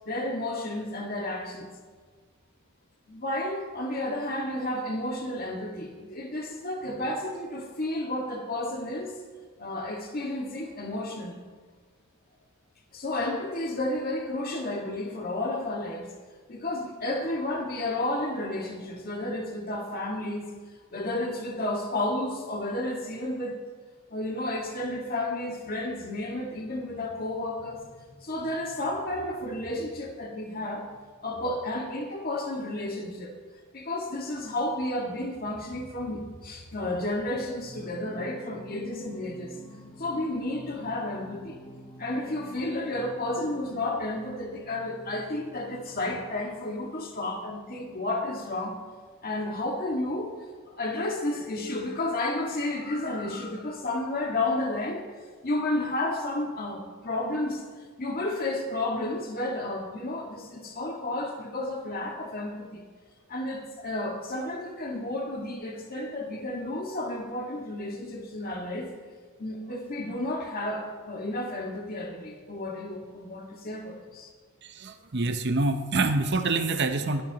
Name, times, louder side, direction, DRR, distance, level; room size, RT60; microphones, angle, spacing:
voice 1, 0.1-1.7 3.1-9.2 9.6-11.3 12.9-16.1 16.5-20.5 20.9-23.6 24.1-30.8 31.2-33.4 33.7-39.6 40.0-41.6 42.0-48.8 49.2-50.3 50.7-55.1 55.4-57.6 58.0-62.8 63.3-68.9 69.4-74.3, left 1 dB, 40° left, 1 dB, 1.8 m, -32 dB
Singing, 37.5-46.5, equal, 20° left, 1.6 m, -48 dB
voice 2, 74.6-77.2, right 3 dB, 50° right, 8 dB, 0.8 m, -26 dB
21.5 x 12.5 x 3.0 m, 1.5 s
head